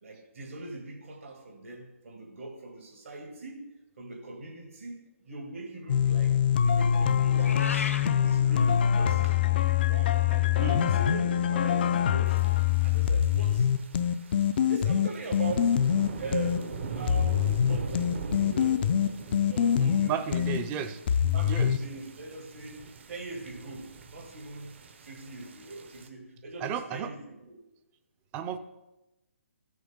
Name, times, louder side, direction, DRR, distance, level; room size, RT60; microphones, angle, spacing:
voice 1, 0.0-6.4 6.6-9.5 9.8-12.4 12.8-13.7 14.7-15.8 16.2-18.9 19.5-20.6 21.3-27.6, right 3 dB, 75° right, 2 dB, 2.2 m, -41 dB
sound 1, 5.9-16.6 17.1-20.6 21.1-21.8, left 9 dB, 45° left, 0.4 m, -24 dB
Meow, 7.3-8.1, left 4 dB, 80° left, 1.0 m, -34 dB
sound 2, 12.3-26.1, right 5 dB, 55° right, 0.9 m, -42 dB
voice 2, 19.8-21.7 26.6-27.1 28.3-28.6, right 7 dB, 20° right, 10 dB, 0.5 m, -34 dB
13.5 x 6.4 x 3.6 m, 0.99 s
hypercardioid pair, 150°, 7 cm